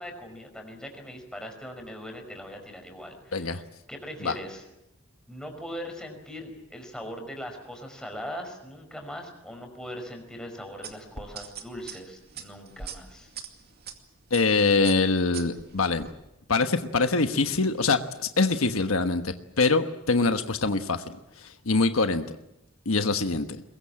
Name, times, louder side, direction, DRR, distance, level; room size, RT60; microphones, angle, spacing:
voice 1, 0.0-3.6 3.9-4.6 5.3-13.3, equal, 5° left, 3 dB, 5.3 m, -40 dB
sound 1, 10.8-13.9 14.3-14.6 14.8-16.1, right 7 dB, 50° right, 2.4 m, -41 dB
voice 2, 14.3-16.1 16.5-21.0 21.6-22.2 22.8-23.5, left 3 dB, 75° left, 8 dB, 1.3 m, -24 dB
22.0 x 22.0 x 8.8 m, 0.86 s
head